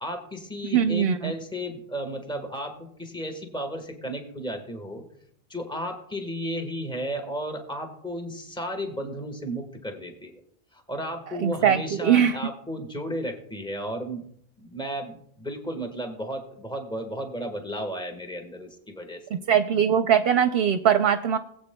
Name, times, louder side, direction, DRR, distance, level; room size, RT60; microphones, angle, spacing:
voice 1, 0.0-5.0 5.5-10.3 10.7-14.2 14.6-19.2, equal, 5° left, 4 dB, 1.3 m, -34 dB
voice 2, 0.7-1.3 11.4-12.4 19.5-21.4, right 8 dB, 70° right, 8 dB, 0.8 m, -21 dB
21.0 x 8.1 x 2.2 m, 0.67 s
omnidirectional pair, 1.1 m